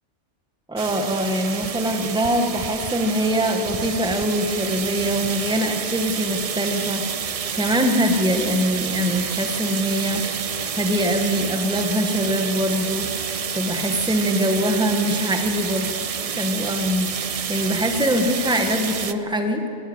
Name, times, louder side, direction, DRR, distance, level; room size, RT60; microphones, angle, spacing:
voice 1, 0.7-10.3 10.7-13.1 13.5-15.9 16.4-19.6, equal, 5° right, 5 dB, 1.2 m, -23 dB
sound 1, 0.8-19.1, right 7 dB, 45° right, 0.4 m, -29 dB
19.5 x 17.5 x 7.8 m, 2.8 s
omnidirectional pair, 1.2 m